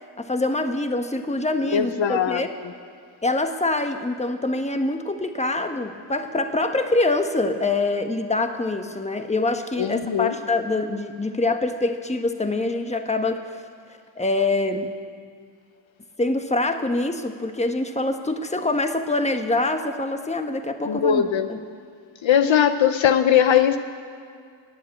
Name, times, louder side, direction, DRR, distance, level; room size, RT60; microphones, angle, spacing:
voice 1, 0.2-2.5 3.2-13.5 13.9-14.9 16.2-21.6, left 2 dB, 15° left, 6 dB, 1.2 m, -25 dB
voice 2, 1.7-2.4 9.8-10.3 20.9-21.5 22.2-23.8, left 9 dB, 65° left, 9 dB, 0.9 m, -19 dB
20.0 x 8.1 x 8.4 m, 2.2 s
cardioid pair, 65°, 50 cm